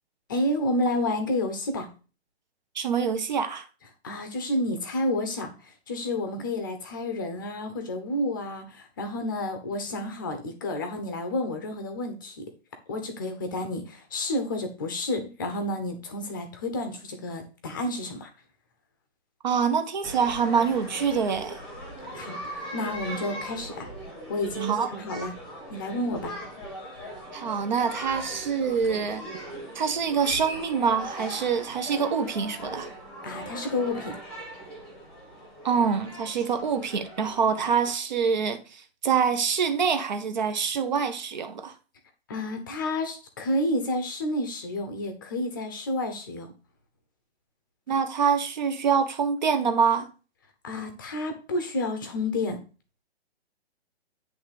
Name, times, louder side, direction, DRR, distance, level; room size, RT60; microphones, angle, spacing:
voice 1, 0.3-1.9 4.0-5.5 5.9-12.5 12.9-18.3 22.1-22.4 22.7-23.9 24.3-25.4 25.7-26.3 33.2-34.2 42.3-46.5 50.6-52.6, left 1 dB, 20° left, 0.8 m, -30 dB
voice 2, 2.7-3.7 19.4-21.6 24.6-24.9 27.3-29.2 29.7-32.9 35.6-41.7 47.9-50.1, right 6 dB, 40° right, 1.0 m, -25 dB
sound 1, 20.0-37.9, equal, 5° left, 1.1 m, -39 dB
10.0 x 3.5 x 5.0 m
hypercardioid pair, 180°, 33 cm